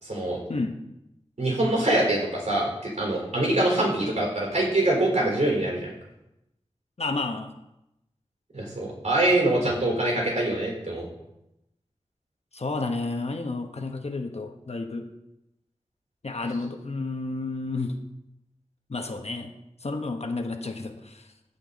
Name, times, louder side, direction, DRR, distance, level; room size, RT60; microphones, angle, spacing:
voice 1, 0.0-0.4 1.4-5.9 8.5-11.1, right 1 dB, 70° right, -2 dB, 4.4 m, -24 dB
voice 2, 7.0-7.5 12.5-15.1 16.2-17.9 18.9-19.5 19.8-21.2, left 3 dB, 60° left, 5 dB, 1.2 m, -31 dB
16.0 x 5.8 x 4.2 m, 0.88 s
wide cardioid pair, 55°, 12 cm